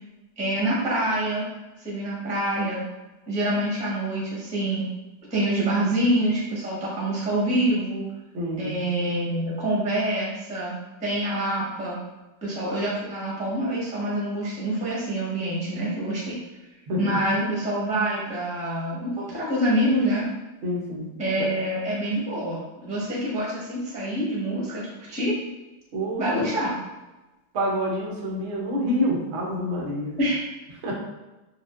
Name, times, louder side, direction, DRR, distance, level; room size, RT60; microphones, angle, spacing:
voice 1, 0.4-1.4 1.8-2.8 3.3-4.9 5.3-8.1 8.6-10.7 11.0-12.0 12.4-16.4 17.0-20.3 21.2-25.3 26.2-26.8 30.2-30.3, right 1 dB, 5° right, -7 dB, 0.5 m, -26 dB
voice 2, 8.3-8.7 16.9-17.2 20.6-21.1 21.4-21.5 25.9-26.5 27.5-30.2 30.8-30.9, equal, 80° right, -2 dB, 0.6 m, -27 dB
4.8 x 2.3 x 2.4 m, 1.1 s
omnidirectional pair, 2.2 m